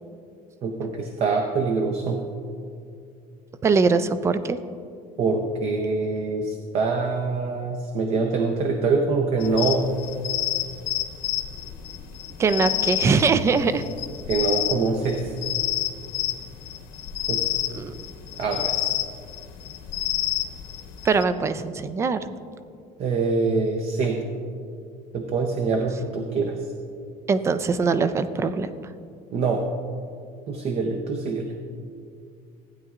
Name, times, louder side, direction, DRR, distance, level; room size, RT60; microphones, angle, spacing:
voice 1, 0.6-2.2 5.2-9.9 14.3-15.3 17.3-17.6 18.4-18.9 23.0-24.2 25.1-26.7 29.3-29.7 30.5-31.6, right 4 dB, 40° right, 4 dB, 0.7 m, -25 dB
voice 2, 3.6-4.6 12.4-13.8 17.7-17.9 21.0-22.3 27.3-28.7, right 4 dB, 20° right, 12 dB, 0.3 m, -22 dB
sound 1, 9.4-21.2, left 13 dB, 80° left, 1.0 m, -29 dB
15.5 x 9.3 x 2.4 m, 2.3 s
cardioid pair, 160°, 15 cm